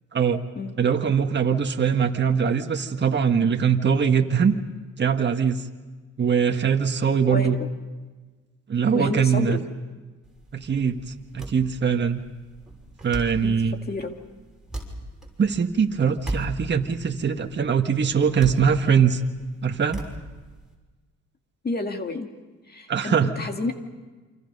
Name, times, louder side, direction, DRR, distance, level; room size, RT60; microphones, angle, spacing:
voice 1, 0.1-0.4 0.8-4.5 5.0-5.6 6.2-7.6 8.7-9.6 10.5-11.0 11.3-12.2 13.0-13.7 15.4-19.2 19.6-20.0 22.9-23.3, right 6 dB, 35° right, 4 dB, 1.6 m, -22 dB
voice 2, 7.3-7.7 8.9-9.6 13.4-13.6 13.9-14.2 21.6-22.3 22.7-23.7, left 3 dB, 30° left, 5 dB, 2.2 m, -30 dB
sound 1, 10.2-20.7, right 1 dB, ahead, 6.1 m, -38 dB
28.5 x 25.5 x 5.5 m, 1.3 s
cardioid pair, 90°, 30 cm